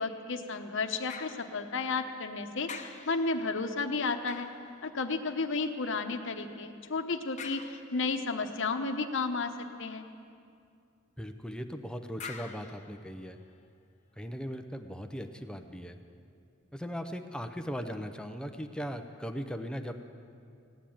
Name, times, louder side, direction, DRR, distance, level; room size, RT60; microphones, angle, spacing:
voice 1, 0.0-2.7 3.0-4.5 4.8-9.5 9.8-10.1, left 4 dB, 65° left, 6 dB, 1.0 m, -32 dB
sound 1, 1.1-2.3 2.6-5.5 7.4-8.3 12.2-13.7 14.2-14.3, left 5 dB, 35° left, 0.9 m, -48 dB
voice 2, 11.2-13.4 14.2-16.0 16.7-20.0, equal, 5° left, 6 dB, 0.6 m, -38 dB
16.5 x 9.8 x 8.7 m, 2.4 s
head